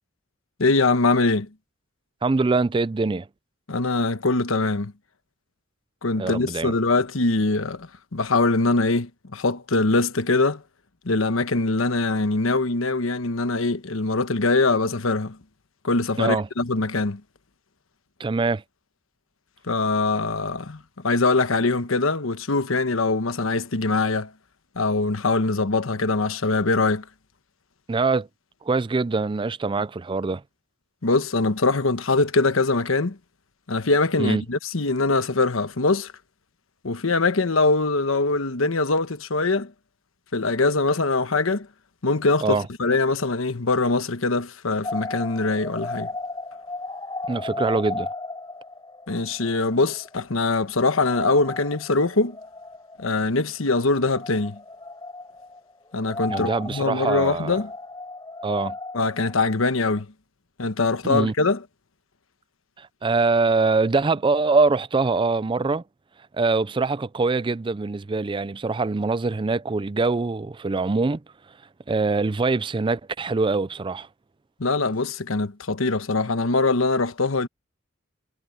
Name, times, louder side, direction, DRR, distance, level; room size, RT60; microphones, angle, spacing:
voice 1, 0.6-1.5 3.7-4.9 6.0-10.6 11.0-15.4 15.8-17.2 19.6-24.3 24.7-27.0 31.0-33.2 33.7-36.1 36.8-39.7 40.3-41.7 42.0-46.1 49.1-52.4 53.0-54.6 55.9-57.7 58.9-60.1 60.6-61.6 74.6-77.5, left 3 dB, 85° left, 1.2 m, -23 dB
voice 2, 2.2-3.3 6.2-6.7 16.2-16.5 18.2-18.6 27.9-28.3 28.6-30.4 34.2-34.4 42.4-42.7 47.3-48.1 56.3-57.6 58.4-58.8 61.0-61.3 62.8-65.8 66.3-71.2 71.9-74.1, right 3 dB, 25° right, 0.4 m, -23 dB
sound 1, 44.8-50.2 50.5-50.6 50.9-53.2 54.0-55.7 56.0-60.0, left 2 dB, 20° left, 5.2 m, -35 dB
head